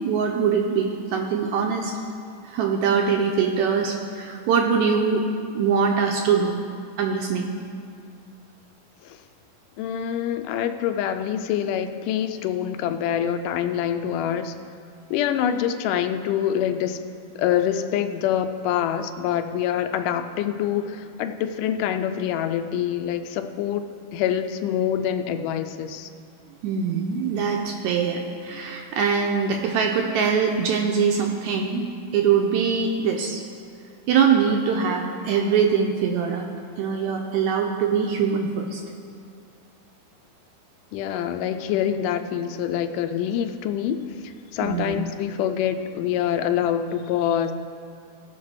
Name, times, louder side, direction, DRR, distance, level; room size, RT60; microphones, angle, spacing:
voice 1, 0.0-2.0 2.4-5.2 5.5-6.5 7.0-7.5 26.6-31.9 32.1-33.4 34.1-36.5 36.8-38.8 44.6-45.0, right 6 dB, 80° right, 2 dB, 1.8 m, -23 dB
voice 2, 9.8-14.5 15.1-17.0 17.4-26.1 40.9-47.5, left 9 dB, 85° left, 9 dB, 2.1 m, -25 dB
17.0 x 5.9 x 4.7 m, 2.4 s
omnidirectional pair, 3.8 m